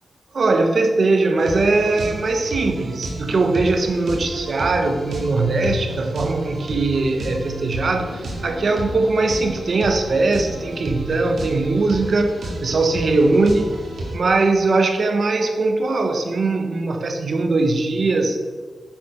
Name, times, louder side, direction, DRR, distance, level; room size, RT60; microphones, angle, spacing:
voice 1, 0.3-13.8 14.1-18.4, right 3 dB, 55° right, 5 dB, 1.2 m, -20 dB
sound 1, 1.4-14.2, right 1 dB, 70° right, 2.3 m, -32 dB
10.0 x 7.5 x 5.2 m, 1.5 s
wide cardioid pair, 150°, 0 cm